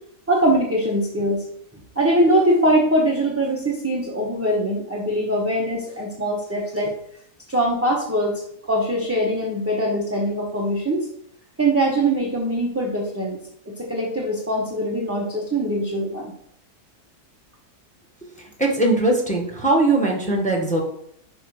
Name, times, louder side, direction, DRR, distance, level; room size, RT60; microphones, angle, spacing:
voice 1, 0.3-1.4 2.0-6.9 7.5-8.4 8.7-11.1 11.6-13.4 13.7-16.3, right 1 dB, 10° right, -3 dB, 0.8 m, -22 dB
voice 2, 18.6-20.8, right 2 dB, 5° left, -2 dB, 1.3 m, -20 dB
5.6 x 5.3 x 4.9 m, 0.69 s
omnidirectional pair, 1.7 m